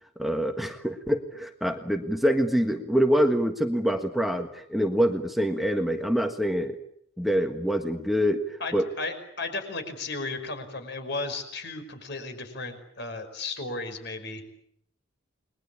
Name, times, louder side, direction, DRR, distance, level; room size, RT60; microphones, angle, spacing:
voice 1, 0.2-6.8 7.2-8.9, equal, ahead, 5 dB, 1.5 m, -25 dB
voice 2, 8.6-14.4, left 3 dB, 55° left, 8 dB, 5.5 m, -34 dB
29.5 x 21.5 x 8.6 m, 0.70 s
head